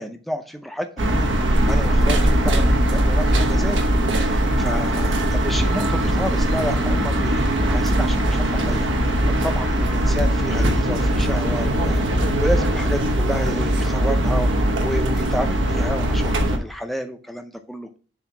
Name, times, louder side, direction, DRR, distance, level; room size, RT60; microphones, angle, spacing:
voice 1, 0.0-1.3 1.7-3.8 4.2-14.5 14.8-17.9, equal, ahead, 6 dB, 0.5 m, -30 dB
sound 1, 1.0-16.6, right 1 dB, 75° right, 1.0 m, -20 dB
7.1 x 2.8 x 5.8 m, 0.40 s
head